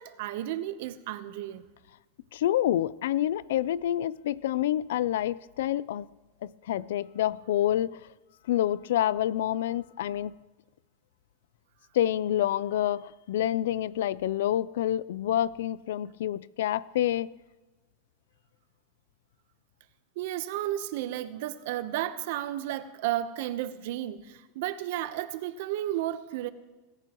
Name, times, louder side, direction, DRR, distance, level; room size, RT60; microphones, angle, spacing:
voice 1, 0.0-1.7 20.2-26.5, right 13 dB, 65° right, 0.9 m, -33 dB
voice 2, 2.3-6.1 6.4-7.9 8.5-10.3 11.9-17.3, left 12 dB, 80° left, 0.4 m, -27 dB
26.0 x 14.5 x 3.1 m
supercardioid pair, 140°, 0 cm